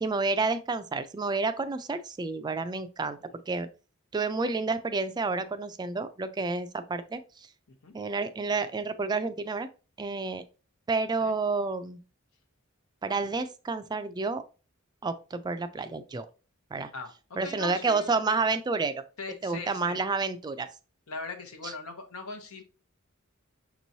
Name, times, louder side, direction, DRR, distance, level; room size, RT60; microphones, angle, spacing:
voice 1, 0.0-3.7 4.1-7.2 7.9-9.7 10.0-10.4 10.9-12.0 13.0-14.4 15.0-16.3 16.7-16.9 17.4-19.0 19.4-20.7 21.6-21.7, right 4 dB, 20° right, 10 dB, 0.3 m, -30 dB
voice 2, 16.9-18.4 19.2-20.0 21.1-22.6, left 3 dB, 90° left, 5 dB, 0.9 m, -40 dB
6.0 x 3.0 x 2.7 m, 0.33 s
head